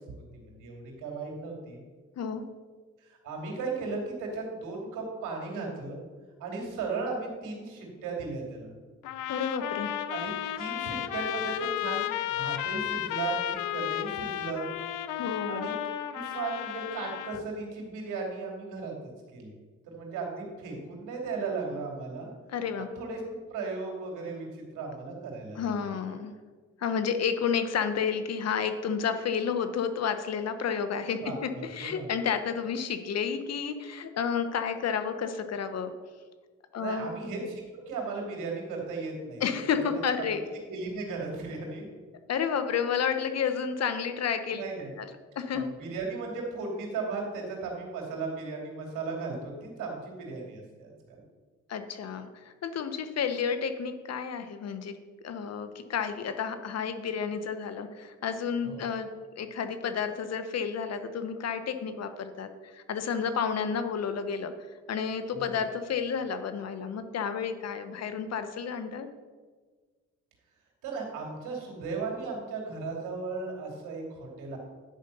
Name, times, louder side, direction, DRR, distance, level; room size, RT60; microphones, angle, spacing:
voice 1, 0.3-1.8 3.0-6.0 6.4-8.7 10.1-12.1 12.4-14.7 15.5-15.7 16.1-18.9 19.3-19.5 19.9-22.3 22.8-25.9 31.2-32.1 36.8-39.4 40.2-40.3 40.7-41.9 44.5-44.9 45.5-51.2 58.6-58.8 65.3-65.6 70.8-74.6, right 4 dB, 90° right, 0 dB, 2.9 m, -36 dB
sound 1, 9.0-17.4, left 12 dB, 90° left, 0.6 m, -33 dB
voice 2, 9.3-9.9 15.2-15.7 22.5-22.9 25.6-26.3 26.8-35.9 36.7-37.1 39.4-40.4 42.3-44.6 45.0-45.1 45.4-45.7 51.7-54.9 55.2-59.1 59.4-64.5 64.9-69.1, left 7 dB, 55° left, 9 dB, 1.1 m, -31 dB
10.5 x 5.2 x 6.9 m, 1.5 s
cardioid pair, 90°, 30 cm